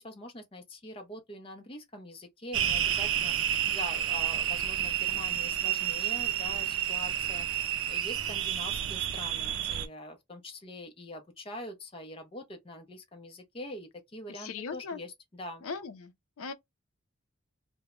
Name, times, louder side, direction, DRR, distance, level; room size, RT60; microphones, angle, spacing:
voice 1, 0.0-15.6, left 1 dB, 25° left, 0.5 m, -44 dB
sound 1, 2.5-9.9, right 10 dB, 75° right, 0.4 m, -30 dB
voice 2, 14.3-15.0 15.6-16.1 16.4-16.5, left 5 dB, 85° left, 0.5 m, -38 dB
2.1 x 2.0 x 3.5 m
head